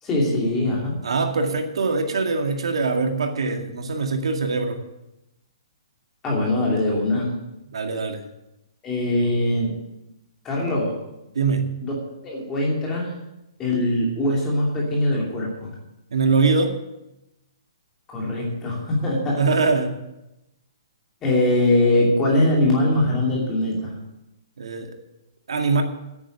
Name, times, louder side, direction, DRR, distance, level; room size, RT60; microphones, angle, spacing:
voice 1, 0.0-1.0 6.2-7.3 8.8-9.8 10.4-11.0 11.8-11.9 12.2-13.1 13.6-15.7 18.1-19.4 21.2-24.0, left 1 dB, 10° left, -3 dB, 2.8 m, -22 dB
voice 2, 1.0-4.8 7.7-8.2 11.4-11.7 16.1-16.7 19.4-19.9 24.6-25.0 25.5-25.8, right 4 dB, 90° right, 4 dB, 2.1 m, -22 dB
10.5 x 9.6 x 7.9 m, 0.92 s
hypercardioid pair, 180°, 3 cm